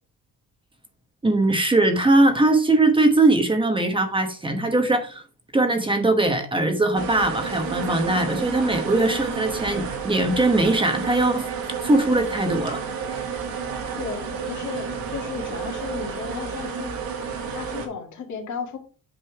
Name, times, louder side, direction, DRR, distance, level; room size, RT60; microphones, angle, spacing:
voice 1, 1.2-5.2 5.5-11.5 11.8-12.8, right 2 dB, 15° right, 6 dB, 1.0 m, -20 dB
sound 1, 6.9-17.9, right 6 dB, 85° right, 2.4 m, -31 dB
voice 2, 14.0-17.0 17.5-18.8, left 6 dB, 55° left, 1 dB, 2.1 m, -34 dB
8.5 x 5.4 x 4.7 m, 0.37 s
cardioid pair, 175°, 35 cm